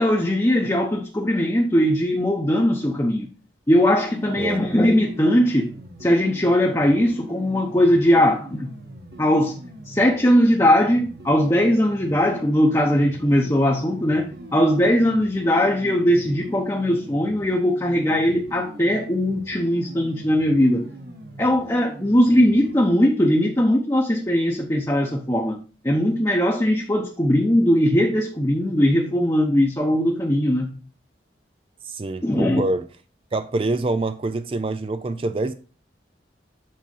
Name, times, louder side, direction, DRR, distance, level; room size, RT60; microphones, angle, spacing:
voice 1, 0.0-3.3 3.7-5.7 6.0-8.7 9.2-9.5 9.9-20.9 21.4-25.6 25.8-30.7 32.2-32.6, equal, 15° left, 0.8 m, -20 dB
sound 1, 4.0-22.9, right 1 dB, 60° right, 1.6 m, -41 dB
voice 2, 31.8-32.9 33.3-35.5, right 2 dB, 30° right, 0.4 m, -26 dB
7.6 x 4.1 x 5.5 m
head